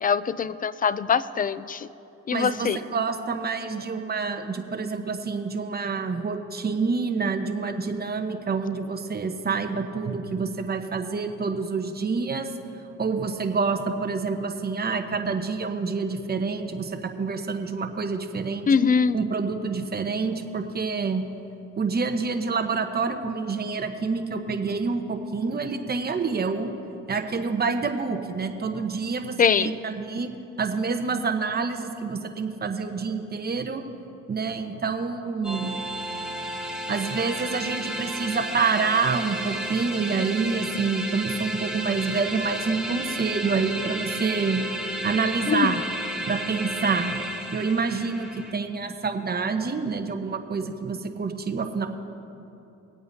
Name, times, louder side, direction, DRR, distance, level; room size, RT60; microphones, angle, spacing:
voice 1, 0.0-1.9 2.3-2.8 18.7-19.2 29.4-29.7 45.5-45.8, left 6 dB, 25° left, 16 dB, 0.4 m, -22 dB
voice 2, 2.3-12.5 13.0-18.7 19.1-21.2 21.8-26.7 27.1-30.3 30.6-33.8 34.3-35.8 36.9-44.6 45.0-45.8 46.2-47.2 47.5-51.9, right 4 dB, 30° right, 6 dB, 1.1 m, -27 dB
sound 1, 35.4-48.5, right 1 dB, ahead, 1.6 m, -33 dB
22.5 x 8.6 x 2.8 m, 2.9 s
supercardioid pair, 80°, 32 cm